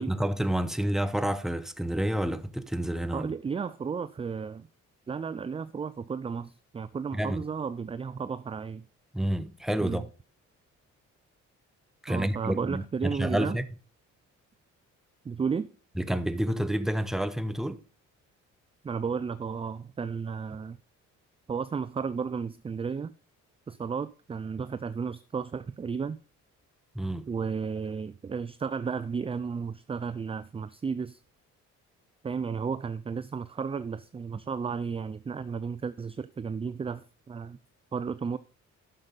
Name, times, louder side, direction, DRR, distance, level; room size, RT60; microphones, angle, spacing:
voice 1, 0.0-3.3 7.1-7.4 9.1-10.1 12.0-13.6 16.0-17.8 26.9-27.3, right 1 dB, ahead, 0.8 m, -29 dB
voice 2, 3.1-4.7 5.1-8.8 9.8-10.0 12.1-13.6 15.2-15.7 18.8-20.8 21.5-23.1 23.7-26.2 27.3-31.2 32.2-37.6 37.9-38.4, right 5 dB, 20° right, 0.4 m, -33 dB
11.0 x 6.7 x 4.0 m
cardioid pair, 90°, 30 cm